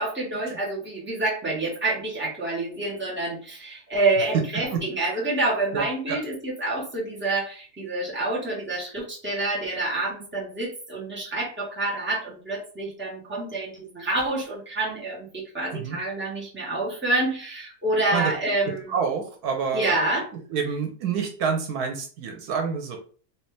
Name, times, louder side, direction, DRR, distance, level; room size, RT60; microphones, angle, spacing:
voice 1, 0.0-18.9 19.7-20.3, right 2 dB, 10° right, -6 dB, 1.2 m, -27 dB
voice 2, 5.7-6.2 15.7-16.0 18.1-18.3 18.9-19.9 20.5-23.0, right 6 dB, 85° right, 3 dB, 1.2 m, -28 dB
3.1 x 2.8 x 3.2 m, 0.41 s
omnidirectional pair, 1.6 m